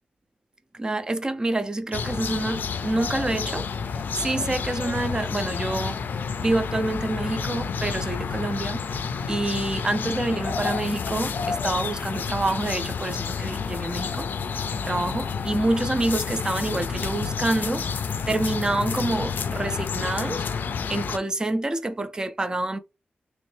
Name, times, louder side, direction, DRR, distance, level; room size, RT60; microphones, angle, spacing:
voice 1, 0.7-3.7 4.1-6.0 6.4-8.8 9.3-14.3 14.7-17.9 18.3-20.5 20.9-22.8, right 2 dB, 20° right, 0.4 m, -27 dB
sound 1, 1.9-21.2, left 6 dB, 75° left, 0.4 m, -30 dB
3.1 x 3.0 x 3.2 m
wide cardioid pair, 150°, 3 cm